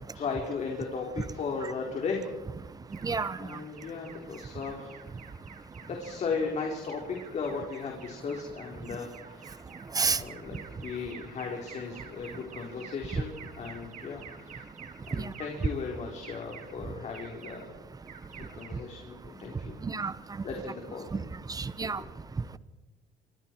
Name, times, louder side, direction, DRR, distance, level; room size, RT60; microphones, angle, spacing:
voice 1, 0.1-2.3 3.4-5.0 5.8-9.6 10.0-14.7 15.1-17.7 18.5-19.8 20.4-21.2 21.8-21.9, left 5 dB, 50° left, 1 dB, 4.2 m, -36 dB
Alarm, 2.9-20.5, right 7 dB, 55° right, 3.7 m, -51 dB
voice 2, 3.0-3.4 9.9-10.2 15.2-15.3 19.8-20.1 21.1-21.2 21.5-22.0, right 4 dB, 25° right, 15 dB, 1.2 m, -29 dB
26.0 x 25.5 x 4.7 m, 1.1 s
cardioid pair, 100°, 16 cm